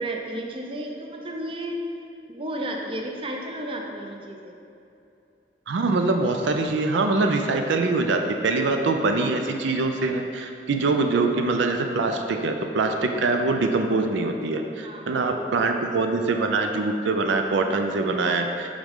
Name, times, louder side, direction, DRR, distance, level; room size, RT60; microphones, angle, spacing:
voice 1, 0.0-1.8 2.3-4.5 14.8-16.1, right 1 dB, 30° right, 1 dB, 0.6 m, -33 dB
voice 2, 5.7-18.8, right 3 dB, 85° right, 5 dB, 0.4 m, -24 dB
8.5 x 3.7 x 3.6 m, 2.7 s
head